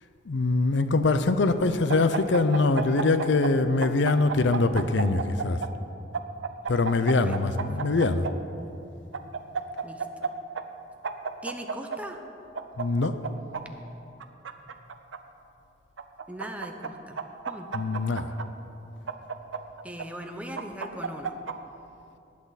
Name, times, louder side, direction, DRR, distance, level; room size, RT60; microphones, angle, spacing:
voice 1, 0.3-5.6 6.7-8.3 12.8-13.2 17.7-18.4, left 3 dB, 70° left, 11 dB, 0.6 m, -23 dB
sound 1, 1.9-3.5 3.8-5.7 6.1-8.3 9.1-10.3 10.5-10.6 11.0-12.0 12.5-13.6 14.2-15.2 16.0-16.9 17.2-18.4 19.1-20.0 20.6-21.5, right 5 dB, 90° right, 0.7 m, -32 dB
voice 2, 11.4-12.2 16.3-17.2 17.5-17.7 19.8-21.4, equal, 5° right, 4 dB, 0.8 m, -39 dB
19.0 x 8.6 x 4.1 m, 2.6 s
head